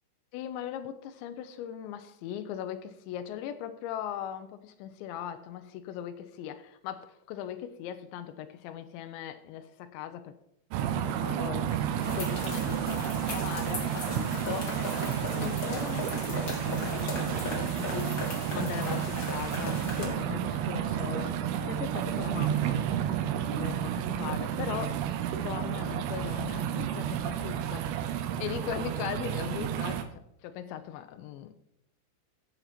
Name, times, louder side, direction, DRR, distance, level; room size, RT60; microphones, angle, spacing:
voice 1, 0.3-10.4 10.8-14.8 15.3-22.8 23.5-25.0 25.4-28.1 28.4-30.1 30.4-31.5, left 10 dB, 85° left, 2.6 m, -39 dB
sound 1, 10.7-30.0, right 10 dB, 80° right, 3.3 m, -31 dB
sound 2, 12.0-20.1, left 2 dB, 55° left, 1.0 m, -37 dB
16.0 x 7.4 x 4.3 m
omnidirectional pair, 6.0 m